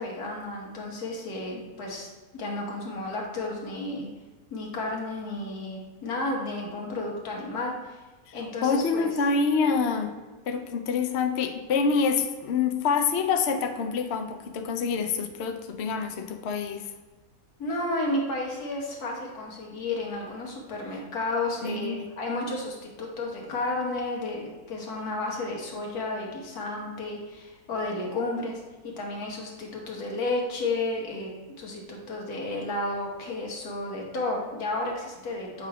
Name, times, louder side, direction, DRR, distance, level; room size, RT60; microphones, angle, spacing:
voice 1, 0.0-4.1 4.5-8.0 8.3-9.1 17.6-31.3 31.6-35.7, left 2 dB, 85° left, -1 dB, 1.8 m, -32 dB
voice 2, 8.3-10.1 10.5-16.9 21.6-22.0, left 5 dB, 60° left, 5 dB, 0.7 m, -26 dB
7.5 x 3.2 x 4.8 m, 1.3 s
omnidirectional pair, 1.6 m